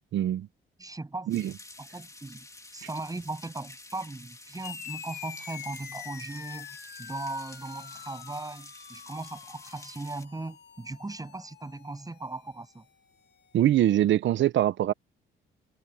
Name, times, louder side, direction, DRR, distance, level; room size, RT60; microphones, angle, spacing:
voice 1, 0.1-0.5 1.3-1.5 13.5-14.9, right 12 dB, 70° right, 0.9 m, -23 dB
voice 2, 0.8-1.3 1.8-2.5 2.7-12.8, right 2 dB, 20° right, 7.7 m, -38 dB
sound 1, 1.3-10.2, left 2 dB, 15° left, 3.1 m, -50 dB
sound 2, 4.6-13.5, left 8 dB, 60° left, 2.0 m, -46 dB
open air
cardioid pair, 90°, 20 cm